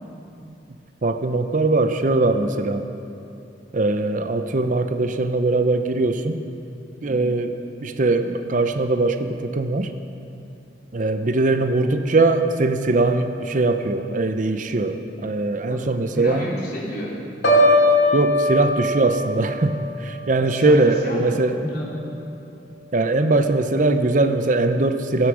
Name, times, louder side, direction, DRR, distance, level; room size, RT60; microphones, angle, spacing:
voice 1, 1.0-2.9 3.7-6.4 7.0-7.5 7.8-9.9 10.9-16.5 18.1-21.5 22.9-25.3, right 2 dB, 45° right, 8 dB, 0.6 m, -21 dB
voice 2, 16.1-17.2 20.5-20.8 21.0-21.9, equal, 55° left, -6 dB, 3.7 m, -30 dB
Piano, 17.4-21.4 21.8-22.2, left 1 dB, 70° left, 2.7 m, -21 dB
16.0 x 9.4 x 6.3 m, 2.8 s
head